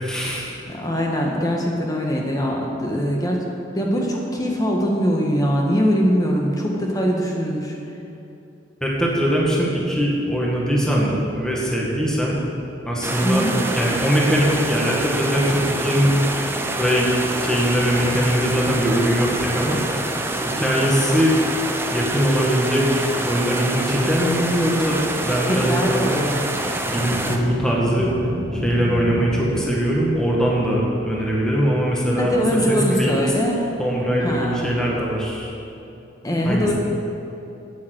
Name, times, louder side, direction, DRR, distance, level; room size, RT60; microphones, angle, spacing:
voice 1, 0.0-0.5 8.8-12.4 12.8-13.4 13.7-16.1 16.8-17.1 17.4-19.8 20.6-21.4 21.9-26.1 26.9-28.1 28.5-32.4 32.7-33.2 33.8-35.5 36.4-36.7, equal, 5° left, -4 dB, 1.8 m, -21 dB
voice 2, 0.7-3.4 3.7-7.8 13.2-13.5 25.5-26.5 32.2-33.7 34.2-34.6 36.2-36.7, equal, 20° left, -1 dB, 1.5 m, -22 dB
sound 1, 13.0-27.4, right 2 dB, 15° right, 0.8 m, -26 dB
sound 2, 26.5-30.2, equal, 75° right, 1.8 m, -30 dB
9.2 x 9.1 x 8.0 m, 2.9 s
head